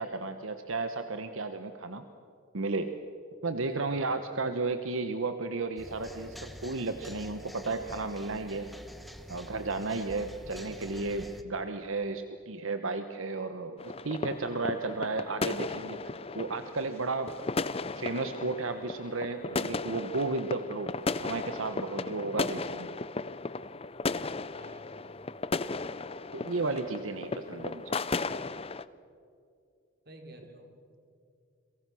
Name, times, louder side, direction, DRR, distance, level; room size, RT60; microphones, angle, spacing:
voice 1, 0.0-2.0 2.5-2.9 3.4-8.7 9.3-16.0 16.3-17.3 18.0-20.9 21.2-23.0 26.3-28.0, right 3 dB, 80° right, 8 dB, 1.2 m, -33 dB
voice 2, 3.7-4.2 24.5-25.3 30.1-30.7, right 1 dB, 50° right, 4 dB, 3.7 m, -50 dB
sound 1, 5.8-11.4, equal, ahead, 1.2 m, -46 dB
sound 2, 13.8-28.8, left 3 dB, 30° left, 0.6 m, -35 dB
30.0 x 23.5 x 6.3 m, 2.5 s
head